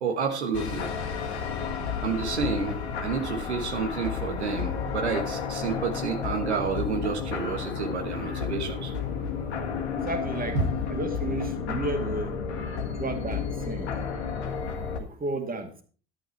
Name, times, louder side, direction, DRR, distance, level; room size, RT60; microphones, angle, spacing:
voice 1, 0.0-0.9 2.0-8.9 10.5-10.7, right 5 dB, 85° right, 4 dB, 1.3 m, -29 dB
sound 1, 0.5-15.0, left 6 dB, 80° left, 1.7 m, -32 dB
voice 2, 10.0-10.6 10.9-12.4 13.0-14.2 15.0-15.8, right 2 dB, 25° right, 6 dB, 2.2 m, -33 dB
11.5 x 8.4 x 4.5 m, 0.40 s
figure-of-eight pair, 60°, 33 cm